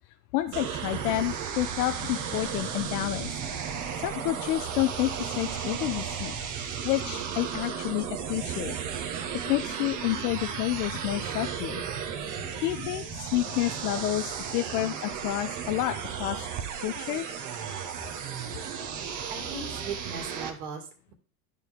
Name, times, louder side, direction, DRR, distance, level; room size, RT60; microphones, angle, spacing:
voice 1, 0.3-3.3 4.0-6.4 6.8-8.8 9.4-11.8 12.6-16.5 16.8-17.3, left 15 dB, 65° left, 8 dB, 0.8 m, -29 dB
sound 1, 0.5-20.5, right 7 dB, 40° right, 1.5 m, -34 dB
voice 2, 19.3-21.1, right 4 dB, 70° right, 3 dB, 2.5 m, -38 dB
12.5 x 4.5 x 3.6 m, 0.39 s
hypercardioid pair, 110°, 49 cm